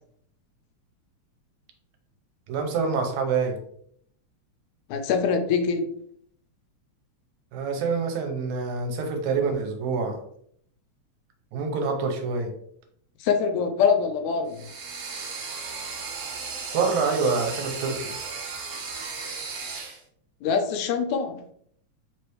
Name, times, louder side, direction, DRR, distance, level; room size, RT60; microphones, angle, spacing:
voice 1, 2.5-3.6 7.5-10.2 11.5-12.5 16.7-18.2, right 4 dB, 85° right, 4 dB, 2.1 m, -26 dB
voice 2, 4.9-5.8 13.2-14.7 20.4-21.4, left 6 dB, 85° left, 6 dB, 2.0 m, -24 dB
sound 1, 14.5-20.0, right 4 dB, 65° right, 2.0 m, -35 dB
5.0 x 3.2 x 3.0 m, 0.66 s
omnidirectional pair, 3.3 m